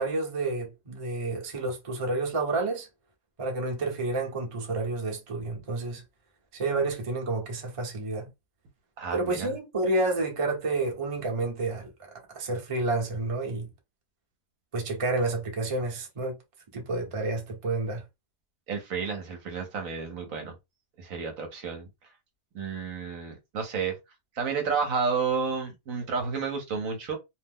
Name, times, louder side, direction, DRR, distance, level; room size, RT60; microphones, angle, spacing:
voice 1, 0.0-2.9 3.4-6.0 6.5-8.3 9.1-11.9 12.3-13.7 14.7-16.4 16.7-18.0, right 2 dB, 30° right, 0.7 m, -29 dB
voice 2, 9.0-9.5 18.7-20.5 21.0-21.9 22.5-24.0 24.3-27.2, right 5 dB, 65° right, 1.1 m, -31 dB
2.7 x 2.0 x 3.5 m
omnidirectional pair, 1.7 m